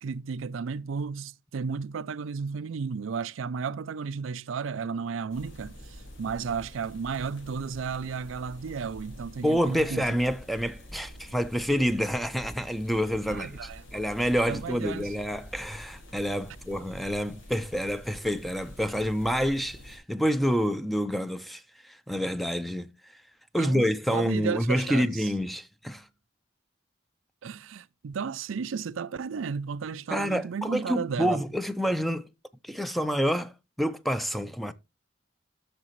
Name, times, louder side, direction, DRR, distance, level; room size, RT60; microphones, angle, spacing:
voice 1, 0.0-10.1 13.3-13.8 14.5-15.1 23.6-25.3 27.4-31.4, right 5 dB, 85° right, 0.4 m, -33 dB
sound 1, 5.3-20.0, equal, 85° left, 4.8 m, -47 dB
voice 2, 9.4-22.9 23.5-26.1 30.1-32.3 32.6-33.5 33.8-34.7, equal, ahead, 0.6 m, -28 dB
12.5 x 6.7 x 3.1 m
head